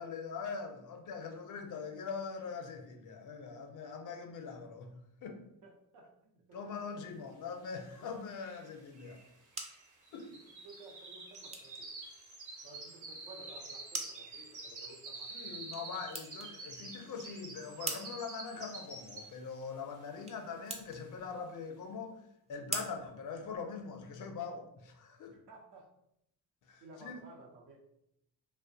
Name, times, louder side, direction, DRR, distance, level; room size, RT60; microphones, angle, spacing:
voice 1, 0.0-4.9 5.2-5.4 6.5-9.2 10.1-10.3 15.3-22.2 22.5-25.3 26.7-27.2, left 5 dB, 50° left, 5 dB, 0.5 m, -42 dB
voice 2, 5.6-7.3 8.0-8.1 10.1-11.9 12.6-15.7 25.3-25.9 26.8-27.8, right 2 dB, 85° right, 0 dB, 0.7 m, -55 dB
sound 1, 7.8-7.9 8.1-19.5 19.9-20.3 20.7-20.8, right 3 dB, 50° right, 0.7 m, -48 dB
sound 2, 9.2-24.1, right 2 dB, 20° right, 0.4 m, -47 dB
2.4 x 2.1 x 2.6 m, 0.77 s
cardioid pair, 100°, 39 cm